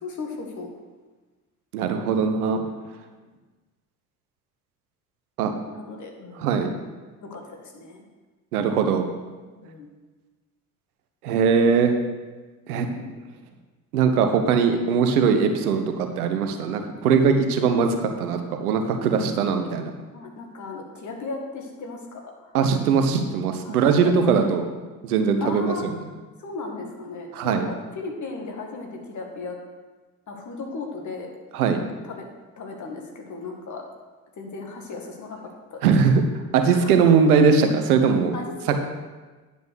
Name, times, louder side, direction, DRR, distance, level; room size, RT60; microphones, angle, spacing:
voice 1, 0.0-0.7 5.7-6.5 7.2-8.0 9.5-9.9 13.0-13.1 20.1-22.5 23.6-24.4 25.4-25.9 26.4-29.6 30.3-31.3 32.0-32.3 32.6-33.8 34.4-35.4 35.7-35.8 36.6-36.9 38.3-38.8, left 3 dB, 40° left, 2 dB, 2.0 m, -36 dB
voice 2, 1.7-2.6 5.4-5.5 6.4-6.7 8.5-9.0 11.2-11.9 12.7-12.9 13.9-19.9 22.5-24.6 25.0-25.7 27.3-27.7 31.5-31.8 35.8-36.2 36.5-38.3, right 6 dB, 80° right, 6 dB, 1.0 m, -20 dB
9.8 x 5.2 x 6.2 m, 1.3 s
hypercardioid pair, 60°, 44 cm